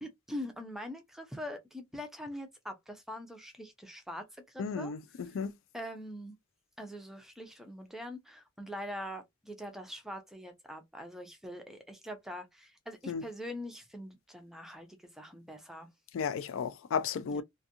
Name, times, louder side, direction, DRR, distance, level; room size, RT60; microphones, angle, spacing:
voice 1, 0.0-5.4 5.7-6.4 6.8-15.9 17.3-17.4, equal, ahead, 0.5 m, -43 dB
voice 2, 4.6-5.0 5.3-5.5 13.1-13.2 16.1-17.4, left 6 dB, 65° left, 0.3 m, -33 dB
2.5 x 2.4 x 2.7 m
head